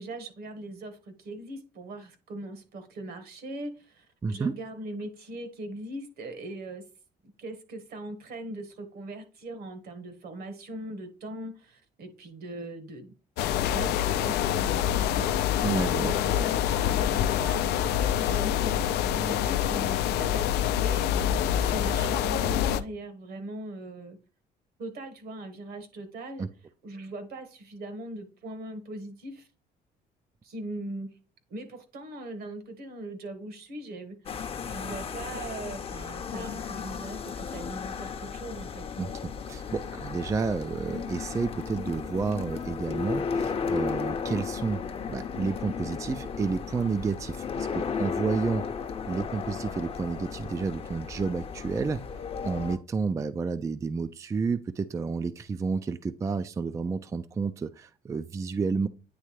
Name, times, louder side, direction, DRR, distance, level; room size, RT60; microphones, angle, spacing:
voice 1, 0.0-6.9 7.4-13.1 13.5-15.4 16.0-24.2 24.8-26.5 26.8-29.5 30.4-31.2 31.5-34.2 34.6-38.9, right 1 dB, 65° right, 8 dB, 1.4 m, -40 dB
voice 2, 4.2-4.5 15.6-16.1 26.4-26.5 39.0-39.1 39.5-44.8 45.1-48.6 49.1-52.0 52.4-58.9, right 4 dB, 20° right, 12 dB, 0.3 m, -30 dB
sound 1, 13.4-22.8, left 10 dB, 80° left, 0.5 m, -26 dB
sound 2, 34.3-52.8, left 6 dB, 35° left, 0.7 m, -35 dB
9.5 x 3.3 x 3.2 m, 0.34 s
cardioid pair, 110°, 17 cm